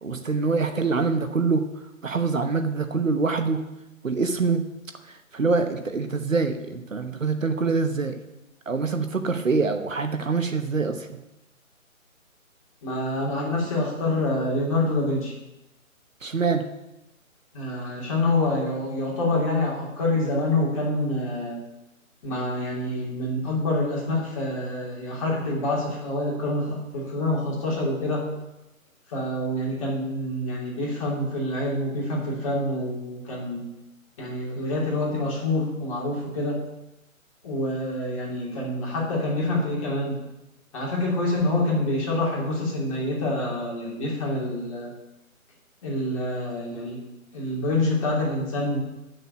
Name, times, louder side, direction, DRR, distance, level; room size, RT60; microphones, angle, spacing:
voice 1, 0.0-1.7 2.0-3.6 4.0-4.6 5.3-8.2 8.7-11.0 16.2-16.6, right 4 dB, 65° right, 7 dB, 1.1 m, -24 dB
voice 2, 12.8-15.3 17.5-21.6 22.2-28.2 29.1-33.6 34.2-36.6 37.4-40.2 40.7-44.9 45.8-47.0 47.3-48.8, left 1 dB, 25° left, -4 dB, 2.9 m, -26 dB
8.4 x 6.5 x 7.9 m, 0.95 s
figure-of-eight pair, 150°, 42 cm